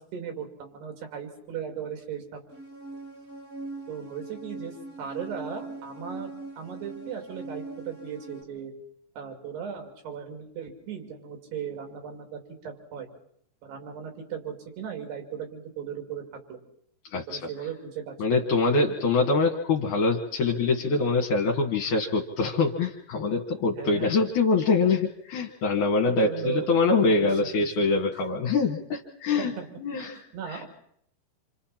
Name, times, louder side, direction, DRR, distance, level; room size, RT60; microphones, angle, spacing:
voice 1, 0.0-2.4 3.9-6.3 6.6-8.7 9.2-13.1 13.6-16.2 16.5-16.6 17.3-18.1 23.7-24.1 26.0-27.3 27.8-27.9 29.4-29.6 30.3-30.7, right 8 dB, 80° right, 4 dB, 5.0 m, -37 dB
sound 1, 2.5-8.4, right 2 dB, 35° right, 1.5 m, -41 dB
voice 2, 17.1-17.5 18.2-29.5 29.8-30.6, left 4 dB, 60° left, 1 dB, 2.6 m, -24 dB
27.5 x 26.5 x 4.4 m, 0.69 s
omnidirectional pair, 4.6 m